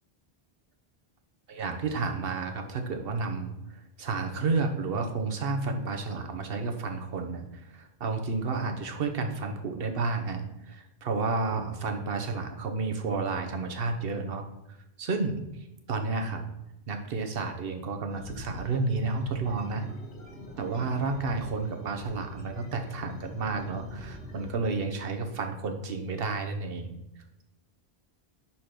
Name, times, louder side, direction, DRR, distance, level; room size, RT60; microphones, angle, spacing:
voice 1, 1.5-15.4 15.9-16.4 16.9-19.9 20.6-27.0, right 3 dB, 60° right, 5 dB, 1.1 m, -31 dB
sound 1, 18.1-24.5, left 2 dB, 75° left, 1.7 m, -44 dB
5.0 x 4.3 x 5.9 m, 0.88 s
omnidirectional pair, 1.1 m